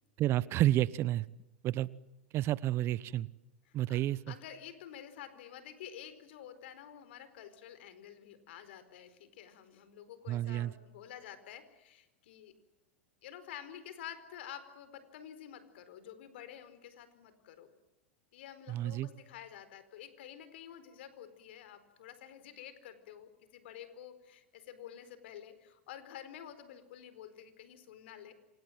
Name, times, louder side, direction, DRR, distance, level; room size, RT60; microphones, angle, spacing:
voice 1, 0.2-1.2 1.6-1.9 2.3-3.3 3.7-4.2 10.3-10.7 18.7-19.1, right 14 dB, 40° right, 20 dB, 1.0 m, -30 dB
voice 2, 3.7-4.0 4.3-12.5 13.2-17.7 18.3-28.3, left 10 dB, 65° left, 13 dB, 4.5 m, -50 dB
28.5 x 26.5 x 7.7 m, 0.98 s
hypercardioid pair, 100°, 6 cm